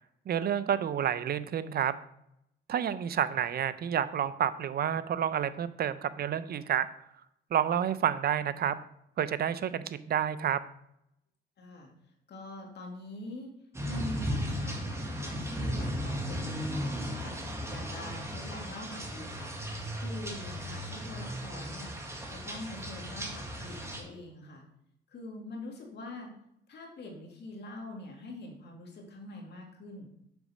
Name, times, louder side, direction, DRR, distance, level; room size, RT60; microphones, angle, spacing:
voice 1, 0.3-1.9 2.7-6.9 7.5-8.8 9.2-10.6, right 9 dB, 50° right, 15 dB, 0.5 m, -29 dB
voice 2, 11.6-11.9 12.3-13.5 13.8-22.0 22.3-24.6 25.1-26.3 26.7-30.1, left 1 dB, 60° left, 1 dB, 2.1 m, -44 dB
sound 1, 13.7-24.0, equal, 15° right, 1.5 m, -36 dB
7.0 x 6.1 x 4.1 m, 0.77 s
cardioid pair, 90°, 20 cm